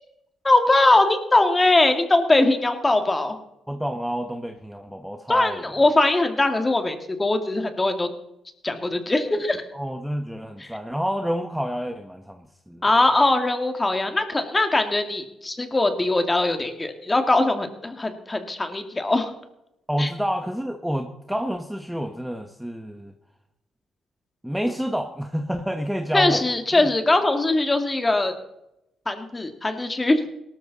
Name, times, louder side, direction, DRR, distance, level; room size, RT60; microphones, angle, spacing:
voice 1, 0.4-3.4 5.3-8.1 8.6-9.6 10.6-10.7 12.8-19.3 20.0-20.1 26.1-28.3 29.1-30.2, left 2 dB, 20° left, 6 dB, 2.3 m, -21 dB
voice 2, 3.7-5.6 9.7-12.8 19.9-23.1 24.4-26.4 26.7-26.8, equal, ahead, 6 dB, 1.2 m, -28 dB
18.0 x 13.0 x 4.1 m, 0.85 s
cardioid pair, 90°, 0 cm